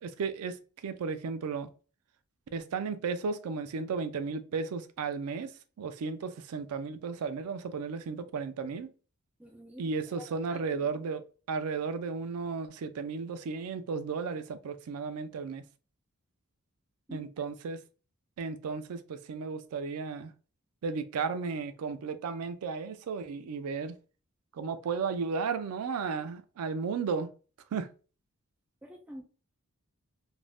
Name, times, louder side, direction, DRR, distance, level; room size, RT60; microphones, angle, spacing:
voice 1, 0.0-1.7 2.5-5.5 5.8-8.9 9.8-15.6 17.1-17.8 18.4-20.3 20.8-24.0 24.5-27.3 27.7-27.9, right 5 dB, 80° right, 0.4 m, -34 dB
voice 2, 9.4-11.0 17.1-17.3 28.8-29.2, equal, 5° right, 0.4 m, -48 dB
2.5 x 2.0 x 3.2 m
head